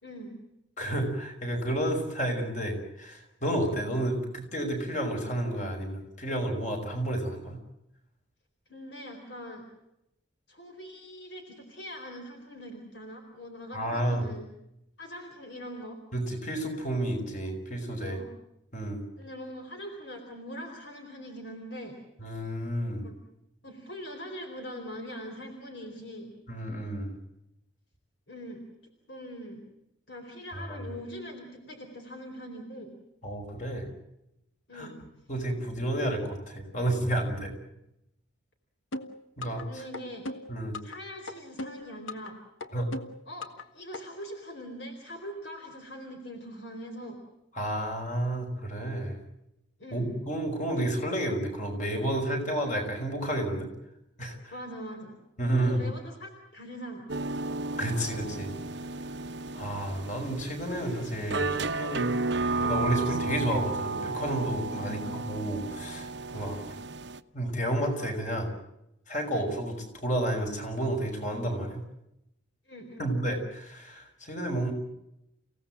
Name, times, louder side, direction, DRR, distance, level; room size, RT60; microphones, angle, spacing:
voice 1, 0.0-0.4 8.7-9.6 10.5-14.5 15.0-16.0 18.0-18.3 19.2-22.0 23.0-23.1 23.6-26.3 28.3-28.6 29.1-29.6 30.1-32.9 34.7-34.9 39.6-40.2 40.8-42.4 43.3-43.5 43.7-47.2 49.8-50.1 54.5-55.2 55.6-57.1 64.8-65.0 72.7-73.1, equal, 60° left, 4 dB, 4.2 m, -42 dB
voice 2, 0.8-7.6 13.7-14.2 16.1-18.2 18.7-19.0 22.2-23.1 26.5-27.1 30.6-30.9 33.2-33.9 34.7-34.9 35.3-37.5 39.4-39.8 40.5-40.8 42.7-42.9 47.5-49.1 49.9-53.7 54.2-54.5 55.4-55.8 57.7-58.5 59.5-62.1 62.6-66.6 67.3-68.5 69.1-71.8 73.0-74.7, right 1 dB, 40° left, 4 dB, 5.7 m, -31 dB
sound 1, 38.9-39.6 39.9-41.0 41.3-42.3 42.6-43.6 43.9-44.0, left 2 dB, 85° left, 1.7 m, -37 dB
sound 2, 57.1-67.2, right 3 dB, 60° right, 0.9 m, -33 dB
30.0 x 17.5 x 7.6 m, 0.84 s
head